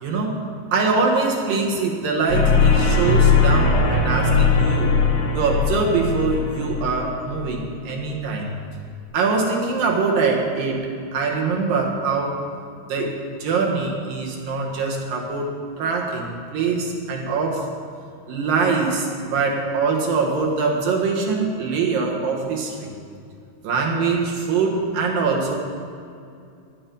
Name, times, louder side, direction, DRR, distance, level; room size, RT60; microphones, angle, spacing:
voice 1, 0.0-4.9 5.3-8.6 9.1-12.4 12.9-17.7 18.3-22.9 23.6-25.6, right 4 dB, 65° right, 0 dB, 2.8 m, -23 dB
sound 1, 2.3-7.6, left 4 dB, 75° left, 3.2 m, -19 dB
14.5 x 11.0 x 5.3 m, 2.4 s
omnidirectional pair, 4.8 m